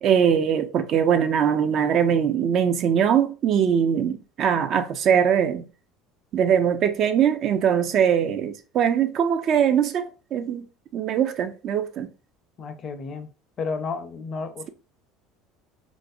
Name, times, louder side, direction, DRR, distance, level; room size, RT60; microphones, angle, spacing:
voice 1, 0.0-5.7 6.3-10.7 10.9-12.1, right 8 dB, 50° right, 0.3 m, -21 dB
voice 2, 12.6-13.3 13.6-14.7, left 4 dB, 45° left, 0.4 m, -32 dB
2.5 x 2.0 x 2.5 m
hypercardioid pair, 75°, 0 cm